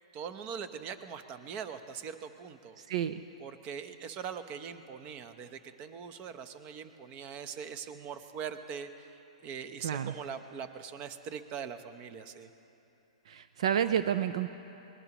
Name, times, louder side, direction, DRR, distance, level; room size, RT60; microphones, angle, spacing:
voice 1, 0.1-2.8 3.4-12.5, right 7 dB, 35° right, 10 dB, 0.9 m, -42 dB
voice 2, 2.8-3.2 9.8-10.1 13.3-14.5, right 9 dB, 70° right, 11 dB, 0.5 m, -30 dB
23.5 x 20.0 x 3.0 m, 3.0 s
hypercardioid pair, 135°, 4 cm